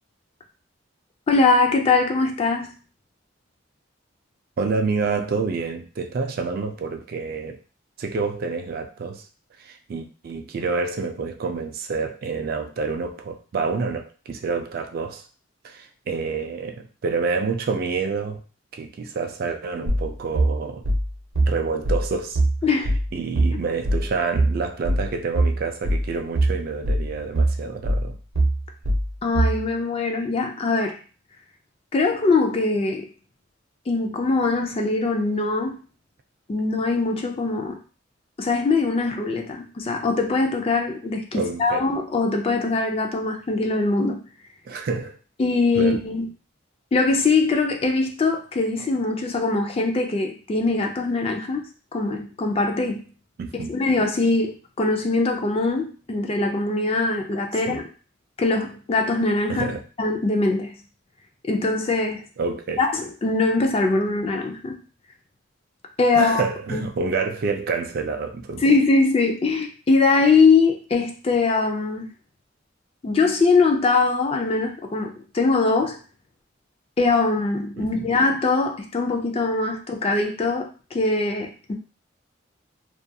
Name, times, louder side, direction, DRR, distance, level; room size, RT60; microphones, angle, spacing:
voice 1, 1.3-2.7 22.6-22.9 29.2-31.0 31.9-33.1 33.9-35.8 36.5-37.8 38.4-44.2 45.4-46.3 46.9-53.0 53.7-57.8 58.4-59.7 60.0-60.7 61.5-62.2 62.8-64.8 66.0-66.4 66.7-66.8 68.6-72.1 73.0-76.0 77.0-81.7, left 3 dB, 30° left, 3 dB, 0.3 m, -22 dB
voice 2, 4.6-7.6 8.0-9.3 9.6-15.2 15.6-18.4 18.7-20.9 21.5-22.4 23.1-28.2 41.3-41.9 44.7-45.2 45.8-46.0 53.4-53.7 57.7-57.8 59.5-59.8 62.4-62.8 66.1-68.6 77.8-78.1, right 4 dB, 50° right, 6 dB, 0.3 m, -28 dB
sound 1, 19.9-29.6, right 1 dB, 85° right, 0.7 m, -22 dB
2.3 x 2.2 x 2.7 m, 0.36 s
head